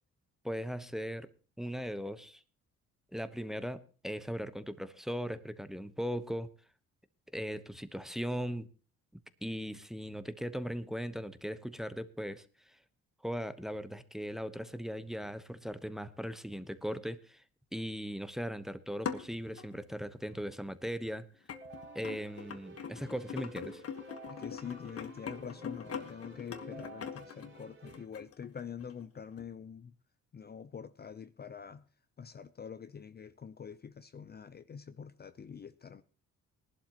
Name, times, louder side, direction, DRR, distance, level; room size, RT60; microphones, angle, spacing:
voice 1, 0.4-1.3 1.6-2.4 3.1-6.5 7.3-8.7 9.4-12.4 13.2-17.4 17.7-21.3 21.9-23.8, equal, ahead, 1.0 m, -38 dB
sound 1, 18.9-19.9 20.8-20.9 21.5-29.0 29.4-29.5, left 7 dB, 50° left, 1.4 m, -42 dB
Keyboard (musical), 21.5-28.1, right 2 dB, 40° right, 3.9 m, -52 dB
voice 2, 24.3-29.9 30.3-31.8 32.2-36.0, left 7 dB, 35° left, 0.6 m, -45 dB
19.0 x 11.5 x 3.0 m
cardioid pair, 90°, 30 cm